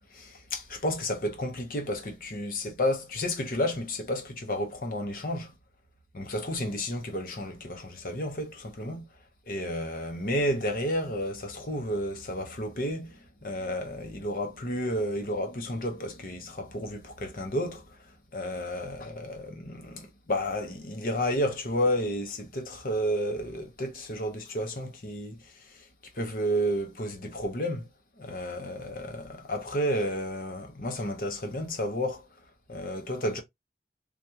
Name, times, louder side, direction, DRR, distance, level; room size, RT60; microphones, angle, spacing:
voice 1, 0.1-5.5 6.1-9.1 9.5-25.9 26.1-27.9 28.2-32.3 32.7-33.4, equal, 50° left, 0.9 m, -31 dB
3.4 x 2.5 x 2.8 m
head